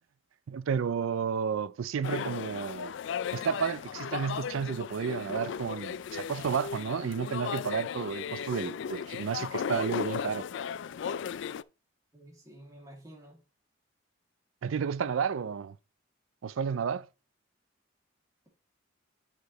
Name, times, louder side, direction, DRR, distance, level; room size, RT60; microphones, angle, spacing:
voice 1, 0.5-2.9 3.3-10.5 14.6-15.8 16.4-17.1, right 6 dB, 80° right, 0.4 m, -32 dB
sound 1, 2.0-11.6, left 7 dB, 65° left, 0.3 m, -36 dB
voice 2, 12.1-13.4, right 1 dB, 15° right, 2.3 m, -51 dB
10.0 x 5.2 x 3.0 m
head